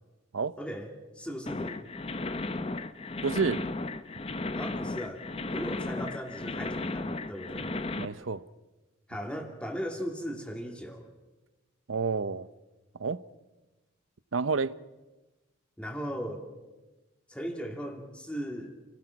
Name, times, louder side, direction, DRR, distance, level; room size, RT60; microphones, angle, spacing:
voice 1, 0.6-1.9 4.5-7.7 9.1-11.1 15.8-16.4 17.3-18.8, equal, 5° left, 2.6 m, -37 dB
sound 1, 1.5-8.0, left 2 dB, 30° left, 0.8 m, -35 dB
voice 2, 3.2-3.6 8.0-8.4 11.9-12.5 13.0-13.2 14.3-14.7, right 4 dB, 85° right, 0.7 m, -29 dB
29.0 x 17.5 x 5.9 m
head